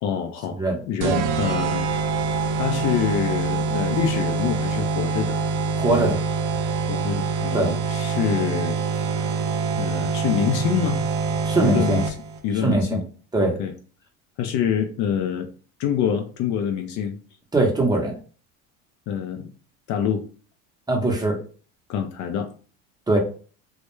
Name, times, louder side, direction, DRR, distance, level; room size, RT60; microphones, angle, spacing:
voice 1, 0.0-0.6 0.9-1.8 2.6-5.4 6.9-9.2 9.8-11.0 11.6-12.2 12.4-13.0 13.4-13.7 14.4-15.5 15.8-17.2 19.1-19.5 19.9-20.2 21.9-22.5, left 8 dB, 50° left, 5 dB, 0.4 m, -26 dB
sound 1, 1.0-12.4, right 4 dB, 55° right, 0.5 m, -25 dB
voice 2, 5.8-6.2 7.5-7.7 11.4-12.0 12.6-13.0 13.3-13.5 17.5-18.1 20.9-21.4 23.1-23.2, right 2 dB, 10° right, 0 dB, 0.7 m, -21 dB
2.1 x 2.1 x 3.0 m, 0.39 s
supercardioid pair, 95°, 37 cm